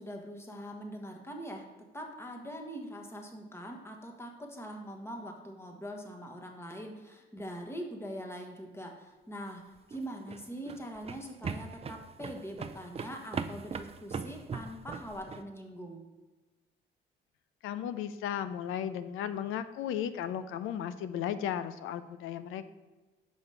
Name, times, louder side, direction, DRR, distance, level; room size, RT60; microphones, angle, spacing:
voice 1, 0.0-1.7 1.9-9.6 9.9-16.0, equal, 10° left, 2 dB, 1.3 m, -43 dB
sound 1, 9.8-15.4, right 5 dB, 30° right, 0.5 m, -40 dB
voice 2, 17.6-22.7, left 9 dB, 90° left, 12 dB, 0.5 m, -35 dB
6.3 x 4.9 x 5.6 m, 1.2 s
cardioid pair, 90°, 20 cm